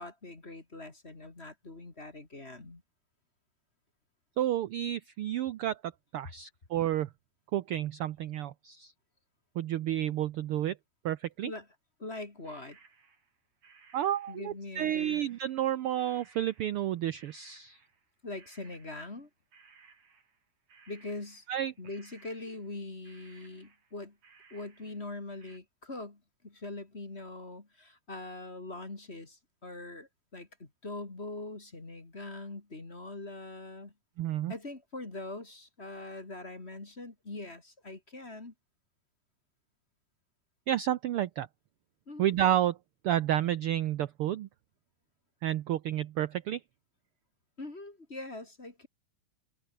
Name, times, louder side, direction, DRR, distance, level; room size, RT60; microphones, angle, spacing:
voice 1, 0.0-2.8 11.4-11.7 12.0-12.8 14.3-15.2 18.2-19.3 20.9-21.5 21.8-24.2 24.5-33.9 34.5-38.5 42.1-42.3 47.6-48.9, left 2 dB, 20° left, 2.5 m, -42 dB
voice 2, 4.4-7.1 7.5-8.9 9.5-10.8 11.0-11.5 13.9-17.8 21.5-21.7 34.2-34.5 40.7-41.5 42.2-42.8 43.0-44.5 45.4-46.6, right 12 dB, 75° right, 1.3 m, -30 dB
sound 1, 12.4-19.3 19.5-21.6 21.9-22.8 23.0-25.6, right 5 dB, 55° right, 4.8 m, -61 dB
omnidirectional pair, 3.5 m